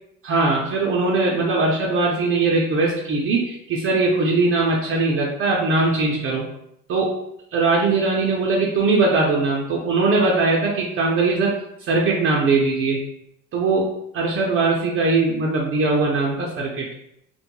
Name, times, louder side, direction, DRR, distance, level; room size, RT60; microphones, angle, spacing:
voice 1, 0.2-6.4 6.9-7.1 7.5-11.5 11.9-13.0 13.5-16.9, right 3 dB, 45° right, -2 dB, 0.5 m, -20 dB
2.2 x 2.1 x 2.9 m, 0.77 s
supercardioid pair, 100°, 31 cm